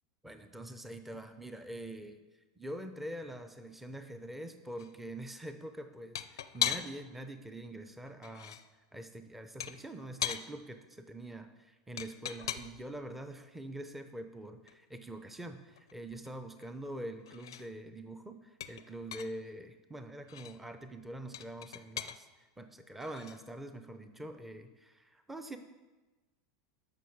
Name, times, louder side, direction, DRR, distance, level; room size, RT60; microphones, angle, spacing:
voice 1, 0.2-2.2 2.6-8.6 8.9-22.3 22.6-25.6, right 1 dB, 10° right, 8 dB, 0.7 m, -44 dB
sound 1, 4.8-4.9 6.2-7.1 8.1-8.7 9.6-10.5 12.0-12.9 14.7-14.8 15.1-15.2 15.5-17.0 17.3-17.7 18.6-19.4 20.2-20.6 21.3-22.2 23.0-23.4, left 10 dB, 80° left, 0.5 m, -38 dB
13.0 x 5.7 x 4.8 m, 1.2 s
hypercardioid pair, 95°, 2 cm